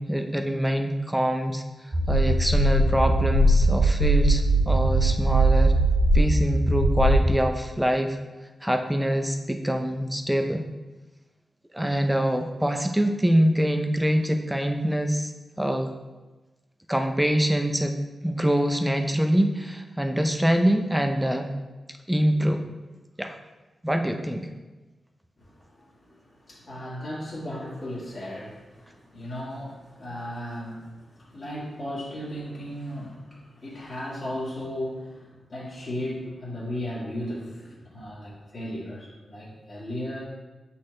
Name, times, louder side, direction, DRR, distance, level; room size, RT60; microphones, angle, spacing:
voice 1, 0.0-1.6 2.1-5.7 6.1-8.2 8.6-10.6 11.7-15.3 15.6-15.9 16.9-17.9 18.2-21.5 22.1-22.6 23.2-23.4 23.8-24.5, equal, 5° right, 5 dB, 0.4 m, -24 dB
sound 1, 1.9-7.3, right 1 dB, 35° right, 1.9 m, -20 dB
voice 2, 25.4-40.2, left 1 dB, 45° left, -9 dB, 1.7 m, -36 dB
7.6 x 4.2 x 3.2 m, 1.2 s
wide cardioid pair, 140°, 0 cm